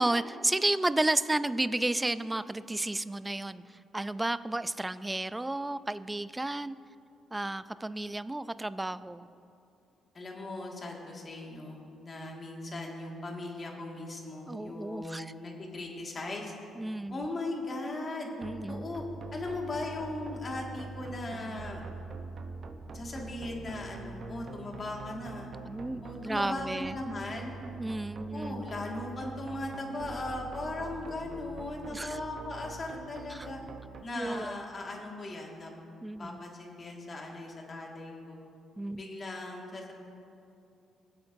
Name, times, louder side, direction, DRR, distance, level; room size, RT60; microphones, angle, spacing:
voice 1, 0.0-3.6 3.9-6.8 7.3-9.3 14.5-15.3 16.8-17.3 18.4-18.9 25.6-27.0 27.8-28.6 31.9-32.2 33.3-33.5 34.1-34.5 36.0-36.4 38.8-39.0, right 2 dB, 15° right, 15 dB, 0.3 m, -32 dB
voice 2, 10.1-16.5 17.1-18.3 18.7-19.0 19.3-21.8 22.9-25.5 26.0-27.6 28.3-33.6 34.0-35.7 36.2-38.4 38.9-39.9, left 2 dB, 40° left, -1 dB, 1.9 m, -38 dB
sound 1, 18.4-34.0, right 4 dB, 55° right, 0.8 m, -44 dB
22.0 x 7.8 x 2.6 m, 2.6 s
cardioid pair, 80°, 0 cm